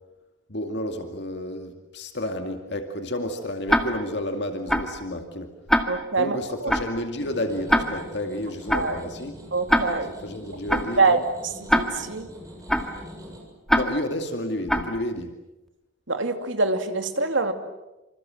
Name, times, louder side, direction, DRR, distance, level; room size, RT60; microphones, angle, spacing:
voice 1, 0.5-5.5 6.1-9.3 10.2-11.2 13.7-15.3, left 1 dB, 60° left, 5 dB, 2.3 m, -31 dB
Tick-tock, 3.7-4.2 4.7-5.0 5.7-6.2 6.7-7.0 7.7-8.2 8.7-9.0 9.7-10.2 10.7-11.0 11.7-12.2 12.7-13.0 13.7-14.2 14.7-15.0, equal, ahead, 1.9 m, -24 dB
voice 2, 5.9-6.7 8.7-9.1 9.5-10.1 10.7-12.3 16.1-17.5, right 3 dB, 75° right, 7 dB, 2.7 m, -25 dB
sound 1, 7.2-13.4, equal, 20° right, 7.1 m, -44 dB
27.5 x 27.0 x 7.7 m, 1.0 s
head